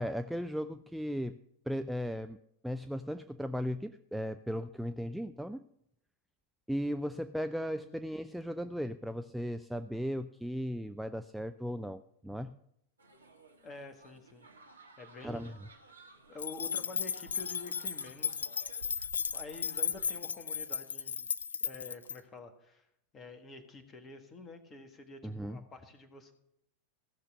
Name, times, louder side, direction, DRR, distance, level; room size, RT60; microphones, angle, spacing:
voice 1, 0.0-1.4 1.7-2.4 2.6-5.7 6.7-12.6 15.2-15.5 25.2-25.6, equal, ahead, 10 dB, 0.4 m, -36 dB
voice 2, 7.8-8.2 13.6-14.5 15.0-15.6 16.3-18.4 19.0-21.3 21.6-22.9 23.1-26.3, left 3 dB, 25° left, 7 dB, 1.6 m, -48 dB
sound 1, 13.0-20.1, right 2 dB, 75° right, 1.2 m, -56 dB
sound 2, 16.4-22.2, left 7 dB, 70° left, 0.4 m, -35 dB
15.5 x 6.6 x 6.4 m, 0.77 s
figure-of-eight pair, 90°, 0 cm